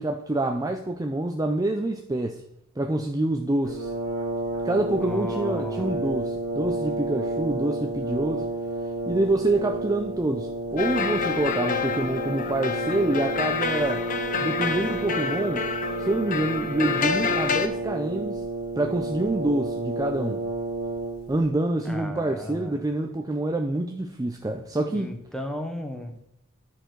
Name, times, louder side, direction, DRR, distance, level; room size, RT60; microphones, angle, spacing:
voice 1, 0.0-2.4 2.8-3.9 4.6-8.4 9.1-14.1 14.4-15.7 16.0-18.4 18.8-20.4 21.3-25.1, right 2 dB, 15° right, 4 dB, 0.4 m, -26 dB
Brass instrument, 3.6-21.4, right 2 dB, 75° right, 1.6 m, -31 dB
voice 2, 5.0-6.0 21.8-22.8 24.9-26.2, equal, 5° left, 4 dB, 0.9 m, -35 dB
sound 1, 10.8-17.7, left 6 dB, 35° left, 0.5 m, -28 dB
10.5 x 4.4 x 4.6 m, 0.82 s
head